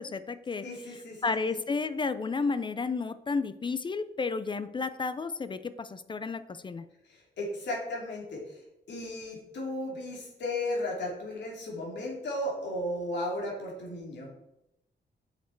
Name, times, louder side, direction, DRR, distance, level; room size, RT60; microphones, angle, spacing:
voice 1, 0.0-6.9, left 4 dB, 25° left, 13 dB, 0.4 m, -32 dB
voice 2, 0.6-1.6 7.1-8.6 8.9-14.3, left 1 dB, 75° left, -2 dB, 2.9 m, -35 dB
8.3 x 6.6 x 4.5 m, 0.86 s
wide cardioid pair, 160°, 18 cm